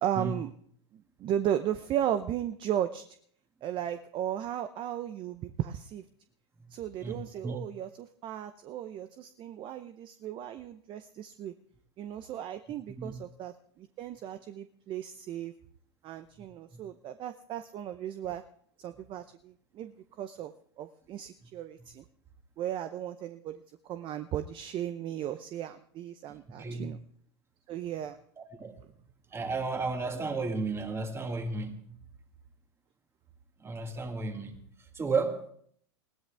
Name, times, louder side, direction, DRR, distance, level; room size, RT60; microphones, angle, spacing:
voice 1, 0.0-0.5 0.9-3.0 3.6-6.0 6.7-11.5 12.0-15.5 16.0-18.4 18.8-19.9 20.2-20.5 20.8-22.0 22.6-27.0 27.7-28.2, right 11 dB, 35° right, 10 dB, 0.7 m, -35 dB
voice 2, 7.0-7.6 13.0-13.1 16.7-16.8 26.3-26.9 28.4-28.8 29.3-32.0 33.6-34.6 34.9-35.5, right 3 dB, 15° right, 6 dB, 2.0 m, -33 dB
20.5 x 16.0 x 3.4 m, 0.62 s
hypercardioid pair, 110°, 14 cm